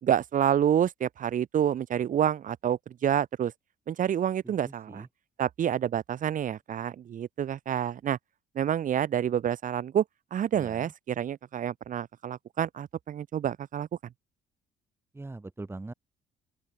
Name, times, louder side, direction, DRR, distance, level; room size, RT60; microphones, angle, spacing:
voice 1, 0.0-3.5 3.9-5.1 5.4-8.2 8.5-10.0 10.3-13.9, right 9 dB, 50° right, 3.2 m, -28 dB
voice 2, 4.4-5.1 10.5-10.9 15.1-15.9, right 2 dB, 15° right, 6.5 m, -42 dB
open air
cardioid pair, 110°, 17 cm